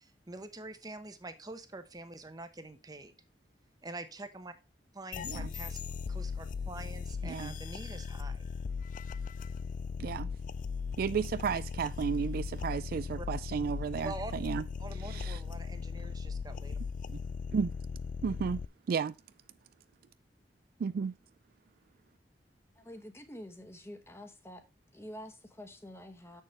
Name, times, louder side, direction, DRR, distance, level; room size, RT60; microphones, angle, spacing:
voice 1, 0.0-3.1 3.8-4.5 4.9-5.8 6.1-8.5 13.2-13.3 14.0-14.3 14.8-16.8, right 2 dB, 25° right, 0.8 m, -45 dB
sound 1, 5.1-18.7, left 5 dB, 50° left, 0.3 m, -38 dB
voice 2, 7.2-7.5 10.0-10.3 11.0-14.6 15.0-15.4 17.1-17.2 17.5-17.7 18.2-18.6 18.9-19.1 20.8-21.1, right 6 dB, 55° right, 0.3 m, -33 dB
voice 3, 22.7-24.6 24.9-26.4, equal, 15° left, 1.0 m, -47 dB
7.1 x 6.5 x 3.2 m
head